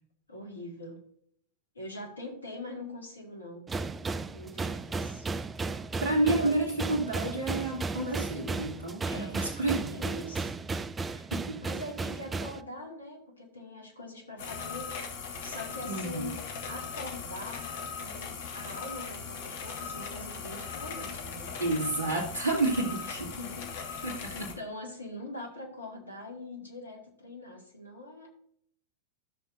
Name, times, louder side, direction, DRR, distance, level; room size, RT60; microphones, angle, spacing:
voice 1, 0.3-1.0 1.7-3.7 4.3-5.3 6.2-6.5 9.0-9.4 9.9-10.5 11.6-14.9 15.4-16.4 16.7-17.7 18.0-21.5 23.0-28.3, left 1 dB, 80° left, 1 dB, 2.4 m, -43 dB
sound 1, 3.7-12.6, right 3 dB, 15° right, 0.4 m, -35 dB
voice 2, 6.0-9.9 11.3-11.6 15.9-16.3 21.6-23.3 24.0-24.5, right 2 dB, 65° right, -4 dB, 2.2 m, -30 dB
sound 2, 14.4-24.5, left 6 dB, 55° left, 1.5 m, -39 dB
13.5 x 6.7 x 2.7 m, 0.63 s
figure-of-eight pair, 90°, 0 cm